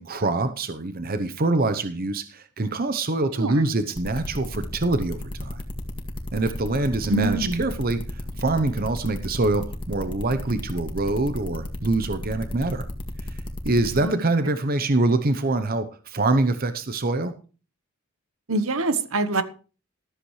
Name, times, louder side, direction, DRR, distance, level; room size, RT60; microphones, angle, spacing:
voice 1, 0.0-5.6 6.3-8.0 8.4-12.8 13.6-17.3, right 2 dB, 45° right, 0.8 m, -24 dB
sound 1, 4.0-14.0, left 1 dB, 25° left, 1.9 m, -33 dB
voice 2, 7.1-7.6 14.0-14.2 18.5-19.4, right 2 dB, 75° right, 1.2 m, -25 dB
14.0 x 13.5 x 3.2 m
head